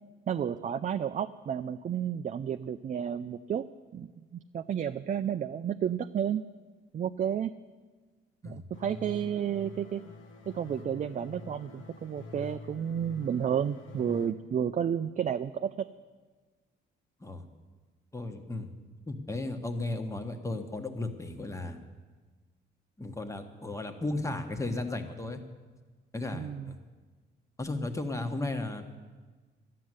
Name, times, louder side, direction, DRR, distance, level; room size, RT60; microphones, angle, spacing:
voice 1, 0.3-3.6 3.9-6.4 6.9-7.5 8.4-10.0 10.5-15.9 26.3-26.7, right 8 dB, 40° right, 8 dB, 0.4 m, -31 dB
sound 1, 8.7-14.3, left 3 dB, 80° left, 1.2 m, -46 dB
voice 2, 18.1-18.7 19.1-21.8 23.0-25.4 26.1-26.7 27.6-28.8, left 2 dB, 15° left, 6 dB, 1.3 m, -35 dB
12.5 x 7.6 x 9.6 m, 1.4 s
cardioid pair, 90°, 20 cm